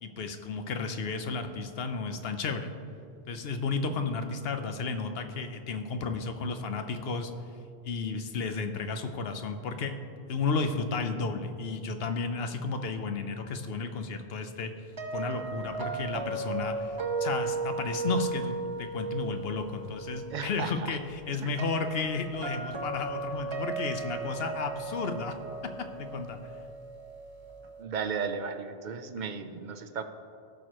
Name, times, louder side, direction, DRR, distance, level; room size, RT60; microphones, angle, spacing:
voice 1, 0.0-2.7 3.3-7.3 7.8-10.0 10.3-14.7 15.1-25.4 25.8-26.4, left 4 dB, 70° left, 7 dB, 1.0 m, -33 dB
sound 1, 15.0-27.8, right 3 dB, 30° right, 1.0 m, -36 dB
voice 2, 20.3-21.0 21.4-21.5 27.8-30.0, right 6 dB, 55° right, 8 dB, 0.7 m, -35 dB
17.0 x 6.4 x 3.0 m, 2.5 s
omnidirectional pair, 1.1 m